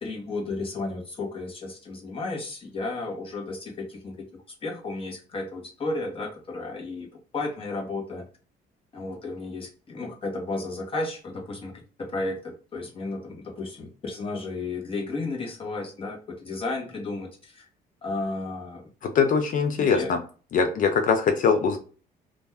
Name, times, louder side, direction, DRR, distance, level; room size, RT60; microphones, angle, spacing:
voice 1, 0.0-4.2 4.6-8.2 8.9-17.7 18.0-18.9 19.8-20.1, left 3 dB, 30° left, 0 dB, 1.0 m, -33 dB
voice 2, 19.0-20.2 20.5-21.8, left 5 dB, 50° left, 5 dB, 0.5 m, -22 dB
2.6 x 2.2 x 3.3 m, 0.37 s
cardioid pair, 110°, 17 cm